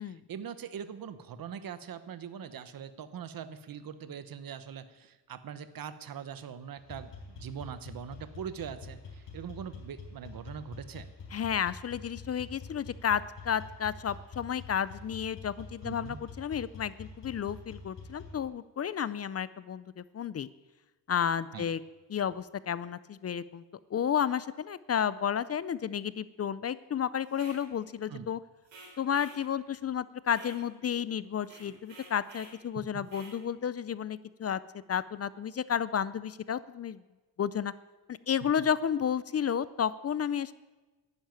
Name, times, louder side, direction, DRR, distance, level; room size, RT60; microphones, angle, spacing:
voice 1, 0.0-11.1 15.8-16.2 21.5-21.6 28.1-28.3 32.9-33.0, right 7 dB, 50° right, 12 dB, 1.0 m, -42 dB
sound 1, 6.8-18.4, left 4 dB, 75° left, 4.3 m, -46 dB
voice 2, 11.3-20.5 21.1-21.8 22.1-23.6 23.9-28.4 29.0-34.6 34.9-37.0 37.4-37.7 38.1-40.5, left 8 dB, 35° left, 17 dB, 0.4 m, -32 dB
sound 2, 27.3-27.6 28.7-29.4 30.3-30.6 31.4-32.6 33.1-33.4, right 2 dB, 75° right, 4.3 m, -51 dB
11.5 x 10.5 x 9.1 m, 1.2 s
wide cardioid pair, 160°, 43 cm